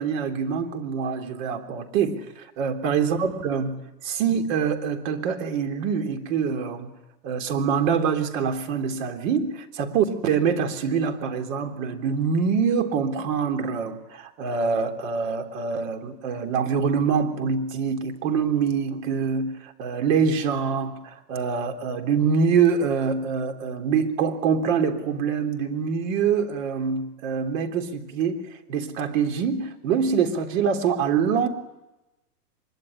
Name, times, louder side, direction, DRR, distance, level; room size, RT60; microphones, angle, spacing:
voice 1, 0.0-3.8 4.0-6.9 7.2-28.4 28.7-31.5, right 6 dB, 50° right, 5 dB, 3.6 m, -25 dB
24.0 x 22.5 x 9.8 m, 0.99 s
hypercardioid pair, 140°, 49 cm